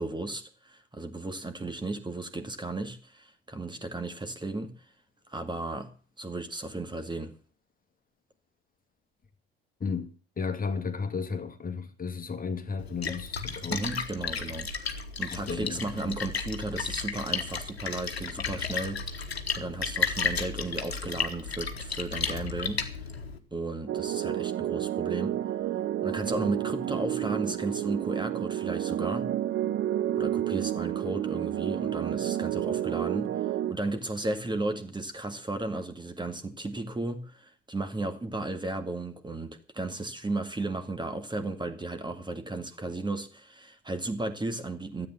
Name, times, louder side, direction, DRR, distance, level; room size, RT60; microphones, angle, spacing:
voice 1, 0.0-4.7 5.3-5.9 6.2-7.3 13.7-22.9 23.5-25.4 26.0-29.3 30.2-45.1, right 2 dB, 15° right, 2.1 m, -34 dB
voice 2, 9.8-13.8 15.3-16.2, left 5 dB, 30° left, 2.0 m, -34 dB
Splash splatter, 12.8-23.4, left 5 dB, 85° left, 1.2 m, -33 dB
sound 1, 23.9-33.7, right 12 dB, 45° right, 0.9 m, -30 dB
13.0 x 8.4 x 7.0 m
figure-of-eight pair, 55°, 30 cm